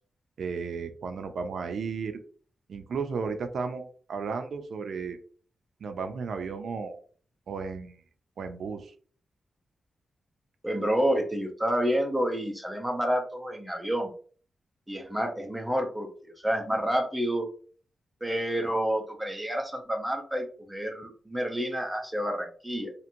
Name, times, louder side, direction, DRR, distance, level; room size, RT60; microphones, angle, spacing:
voice 1, 0.4-2.2 2.7-5.2 5.8-7.0 7.5-8.0 8.4-8.9, right 5 dB, 70° right, 7 dB, 0.3 m, -34 dB
voice 2, 10.6-14.1 14.9-17.5 18.2-22.9, equal, 5° right, 2 dB, 0.6 m, -29 dB
2.9 x 2.5 x 2.5 m, 0.43 s
wide cardioid pair, 160°, 0 cm